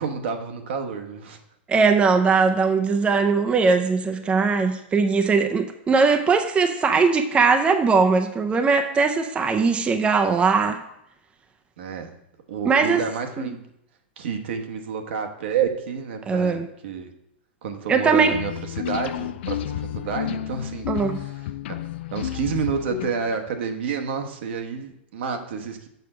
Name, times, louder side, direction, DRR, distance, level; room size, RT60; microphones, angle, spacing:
voice 1, 0.0-1.4 11.8-12.1 12.5-13.6 14.2-17.1 17.6-21.4 21.7-21.8 22.1-25.9, right 6 dB, 70° right, 5 dB, 1.0 m, -29 dB
voice 2, 1.7-10.8 12.7-13.0 13.4-13.5 16.3-16.7 17.9-18.4 20.9-21.2, right 4 dB, 15° right, 6 dB, 0.5 m, -20 dB
sound 1, 18.3-23.5, left 13 dB, 70° left, 0.3 m, -31 dB
6.8 x 5.5 x 4.9 m, 0.78 s
hypercardioid pair, 115°, 6 cm